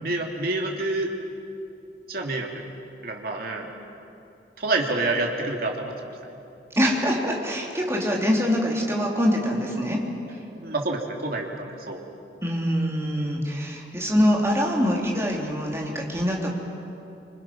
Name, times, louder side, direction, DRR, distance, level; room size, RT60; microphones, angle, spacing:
voice 1, 0.0-1.1 2.1-2.5 3.0-3.7 4.6-6.4 10.6-12.0, right 2 dB, 55° right, 1 dB, 2.9 m, -28 dB
voice 2, 6.7-10.0 12.4-16.5, equal, 15° right, -2 dB, 3.3 m, -24 dB
26.5 x 26.0 x 6.1 m, 2.8 s
head